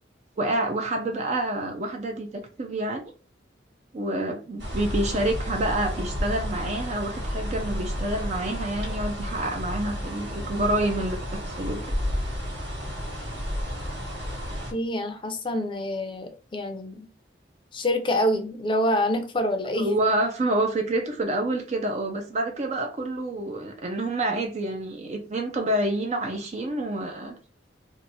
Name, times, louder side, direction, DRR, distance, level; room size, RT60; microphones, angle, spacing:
voice 1, 0.4-3.0 3.9-11.9 19.8-27.3, right 1 dB, 40° right, 0.5 m, -28 dB
sound 1, 4.6-14.7, equal, 85° right, 1.6 m, -31 dB
voice 2, 14.7-17.1 17.7-19.9, left 1 dB, 30° left, 0.5 m, -26 dB
3.0 x 2.2 x 4.0 m
head